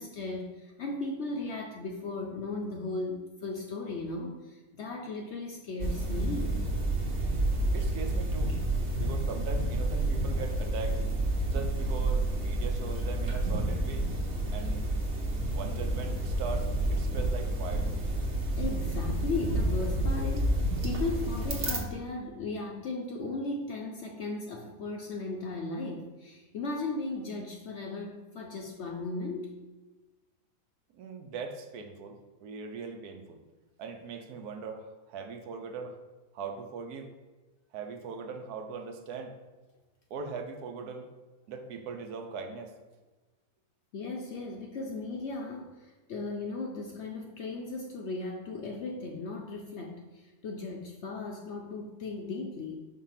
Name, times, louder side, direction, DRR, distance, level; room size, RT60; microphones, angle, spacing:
voice 1, 0.0-6.6 18.6-29.5 43.9-52.8, left 3 dB, 60° left, 1 dB, 0.7 m, -36 dB
sound 1, 5.8-21.8, right 1 dB, 50° right, 1.2 m, -29 dB
voice 2, 7.7-8.5 9.0-11.0 11.5-14.1 14.5-14.9 15.4-17.9 30.9-33.4 33.8-36.0 36.3-37.1 37.7-39.3 40.1-41.1 41.5-42.7, right 4 dB, 75° right, 5 dB, 1.2 m, -40 dB
4.8 x 3.7 x 5.7 m, 1.2 s
omnidirectional pair, 1.7 m